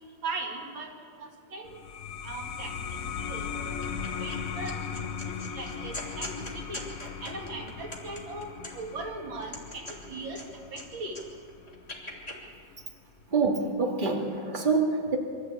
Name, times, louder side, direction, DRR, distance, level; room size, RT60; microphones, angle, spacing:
voice 1, 0.2-0.9 1.2-1.7 2.2-3.9 4.2-4.8 5.3-6.8 7.2-10.4 10.7-11.2, right 3 dB, 75° right, 1 dB, 2.9 m, -39 dB
sound 1, 1.6-12.8, left 7 dB, 55° left, 1.2 m, -38 dB
sound 2, 3.8-4.4 4.7-9.0 9.4-10.8 11.1-12.4, left 1 dB, 20° left, 3.1 m, -41 dB
voice 2, 13.3-15.2, right 4 dB, 25° right, 1 dB, 2.3 m, -26 dB
24.5 x 14.0 x 8.4 m, 2.3 s
omnidirectional pair, 2.2 m